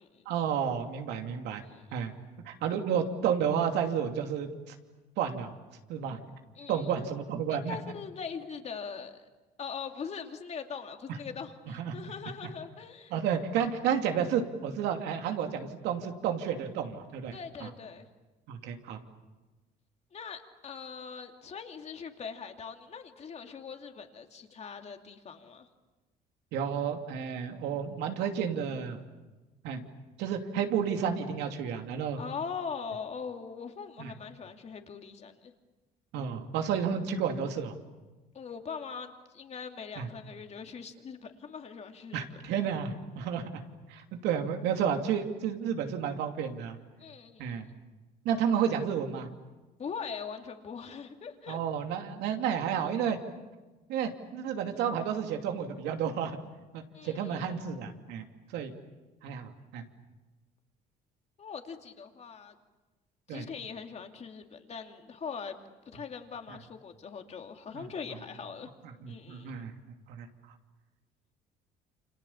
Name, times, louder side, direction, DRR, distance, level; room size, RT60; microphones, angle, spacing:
voice 1, 0.3-1.6 1.9-2.1 2.5-4.7 5.2-5.5 5.9-6.2 6.7-7.8 11.7-12.0 13.1-17.7 18.5-19.0 26.5-29.0 29.6-29.8 30.2-32.2 34.0-34.1 36.1-37.7 40.0-40.1 42.1-43.6 43.9-46.8 47.4-47.7 48.2-49.3 51.5-53.2 53.9-56.4 56.7-58.3 58.5-58.7 59.2-59.8 63.3-63.4 67.7-67.9 69.0-69.7 70.1-70.3, right 8 dB, 85° right, 4 dB, 2.7 m, -31 dB
voice 2, 1.6-2.0 6.6-7.1 7.5-9.2 9.6-13.1 17.3-18.1 20.1-25.7 32.2-35.5 38.3-42.2 47.0-47.5 49.8-51.6 56.9-57.6 61.4-62.6 63.3-65.6 65.8-68.7 69.1-69.6, left 6 dB, 40° left, 5 dB, 2.6 m, -41 dB
29.0 x 26.5 x 7.2 m, 1.2 s
cardioid pair, 110°, 17 cm